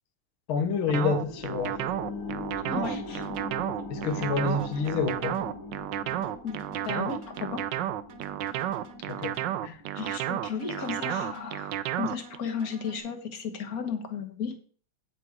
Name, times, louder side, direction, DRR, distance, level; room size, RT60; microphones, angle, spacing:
voice 1, 0.5-1.9 3.9-5.5 9.1-9.4 9.6-9.8, left 5 dB, 85° left, 1.8 m, -28 dB
sound 1, 0.6-11.7 12.1-12.2, left 3 dB, 70° left, 2.0 m, -42 dB
sound 2, 0.9-12.4, right 12 dB, 75° right, 1.1 m, -32 dB
voice 2, 2.7-3.2 6.4-6.6 6.8-7.6 9.9-14.6, left 6 dB, 50° left, 1.5 m, -34 dB
sound 3, 2.8-3.6 4.1-5.6 6.1-7.6 8.1-9.6 10.1-11.6 12.1-13.0, right 3 dB, 55° right, 1.6 m, -50 dB
9.0 x 6.0 x 4.6 m
omnidirectional pair, 2.2 m